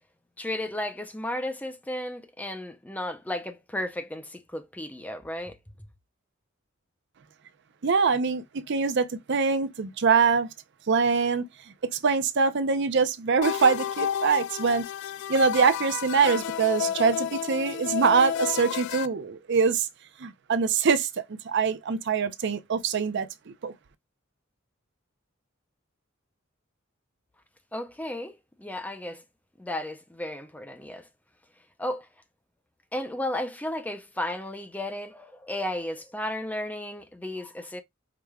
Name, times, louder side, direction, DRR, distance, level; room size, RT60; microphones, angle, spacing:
voice 1, 0.4-5.6 27.7-29.2 29.6-31.1 31.8-32.1 32.9-37.8, left 1 dB, 10° left, 0.5 m, -34 dB
voice 2, 7.8-10.5 10.9-11.4 12.0-14.8 15.3-19.9 20.2-23.3 23.6-23.7, right 5 dB, 60° right, 0.6 m, -24 dB
sound 1, 13.4-19.1, left 9 dB, 60° left, 0.3 m, -31 dB
4.9 x 3.3 x 2.3 m
head